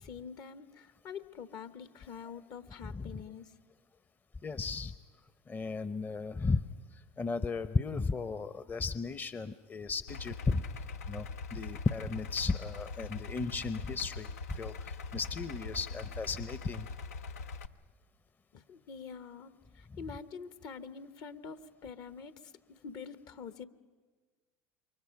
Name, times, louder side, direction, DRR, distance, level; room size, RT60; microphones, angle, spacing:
voice 1, 0.0-3.5 18.5-19.5 20.0-22.3 22.8-23.7, left 6 dB, 55° left, 12 dB, 1.1 m, -45 dB
voice 2, 2.8-3.2 4.4-4.9 5.5-6.6 6.9-10.6 11.1-16.9 19.9-20.1, left 4 dB, 25° left, 13 dB, 0.7 m, -35 dB
Idling, 10.1-17.7, left 4 dB, 85° left, 0.6 m, -42 dB
28.0 x 23.5 x 5.9 m, 1.4 s
hypercardioid pair, 80°, 8 cm